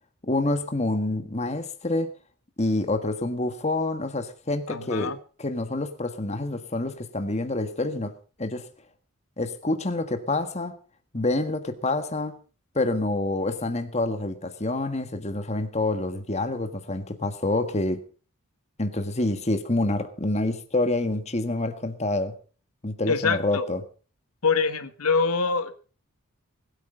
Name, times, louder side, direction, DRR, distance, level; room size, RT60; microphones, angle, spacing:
voice 1, 0.2-2.1 2.6-5.1 5.4-8.1 8.4-8.7 9.4-10.7 11.1-12.4 12.7-18.0 18.8-22.3 22.8-23.8, left 2 dB, 30° left, 1.6 m, -27 dB
voice 2, 4.7-5.2 23.1-23.7 24.4-25.7, left 4 dB, 80° left, 1.4 m, -24 dB
20.5 x 9.0 x 5.6 m
head